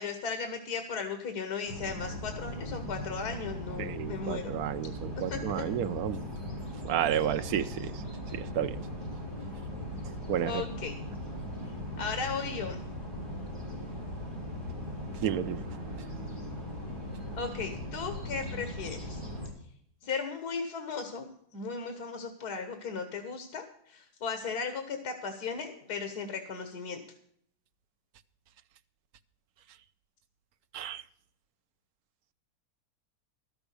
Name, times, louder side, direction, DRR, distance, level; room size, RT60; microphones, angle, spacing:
voice 1, 0.0-4.5 5.3-5.6 10.4-10.9 12.0-12.8 17.4-19.2 20.0-27.0, left 5 dB, 85° left, 6 dB, 1.8 m, -36 dB
sound 1, 1.7-19.5, left 1 dB, 15° left, 5.8 m, -39 dB
voice 2, 3.8-6.3 6.9-7.9 8.3-8.8 10.3-10.6 15.2-15.7 30.7-31.0, right 10 dB, 75° right, 10 dB, 1.1 m, -31 dB
12.5 x 7.1 x 8.2 m, 0.64 s
omnidirectional pair, 1.6 m